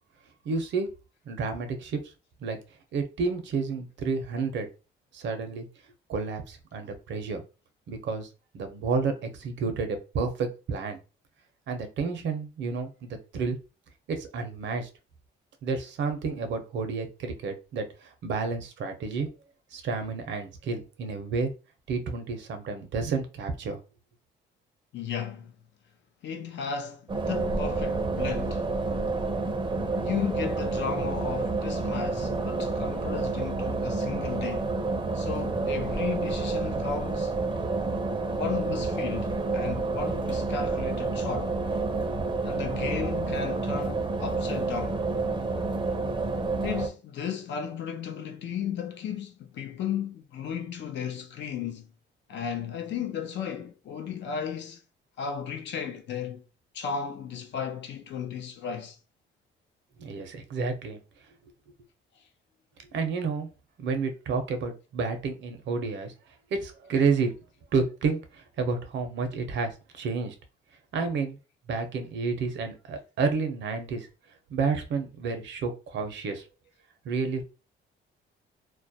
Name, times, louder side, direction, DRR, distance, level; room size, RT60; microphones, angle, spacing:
voice 1, 0.4-0.9 1.3-2.0 2.4-2.6 2.9-4.7 5.1-5.7 6.1-7.4 7.9-8.3 8.5-11.0 11.7-13.6 14.1-14.9 15.6-19.3 19.7-21.5 21.9-23.8 60.0-61.0 62.9-63.5 63.8-66.1 66.5-67.3 67.7-70.3 70.9-71.4 71.7-74.1 74.5-76.5 77.0-77.4, right 4 dB, 70° right, 0.6 m, -30 dB
voice 2, 24.9-25.5 26.2-28.6 29.9-34.7 35.1-37.4 38.4-41.6 42.4-45.0 46.6-51.9 52.3-54.8 55.2-56.4 56.7-59.0, left 7 dB, 65° left, 0.5 m, -34 dB
sound 1, 27.1-46.9, right 3 dB, 25° right, 0.5 m, -29 dB
2.3 x 2.0 x 2.7 m
cardioid pair, 90°, 20 cm